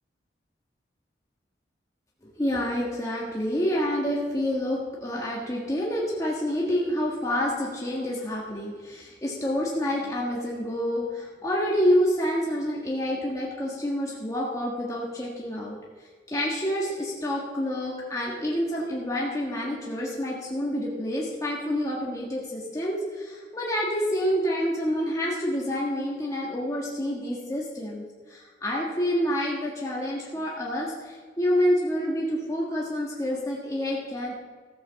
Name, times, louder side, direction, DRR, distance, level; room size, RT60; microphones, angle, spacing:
voice 1, 2.4-15.8 16.3-34.3, equal, 20° left, -4 dB, 1.6 m, -28 dB
14.0 x 7.1 x 7.0 m, 1.5 s
head